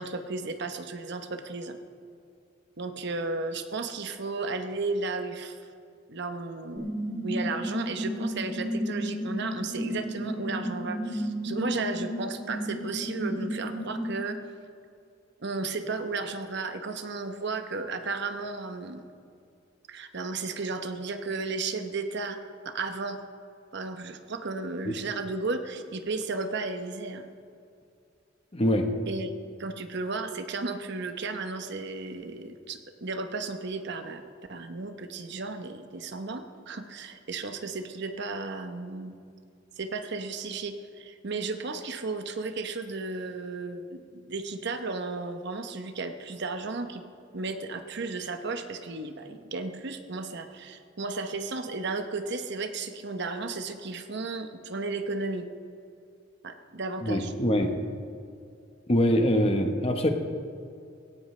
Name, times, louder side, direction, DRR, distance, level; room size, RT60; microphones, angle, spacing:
voice 1, 0.0-1.8 2.8-5.7 6.1-14.4 15.4-19.1 19.9-22.4 22.6-23.2 23.7-27.3 29.1-29.3 29.6-34.2 34.5-39.1 39.8-47.0 47.3-55.5 56.4-57.3, right 3 dB, 60° right, 7 dB, 1.0 m, -34 dB
sound 1, 6.8-14.1, equal, 10° left, 4.0 m, -33 dB
voice 2, 28.5-28.9 57.0-57.7 58.9-60.1, equal, 30° left, 5 dB, 1.1 m, -24 dB
17.5 x 15.5 x 3.3 m, 2.4 s
head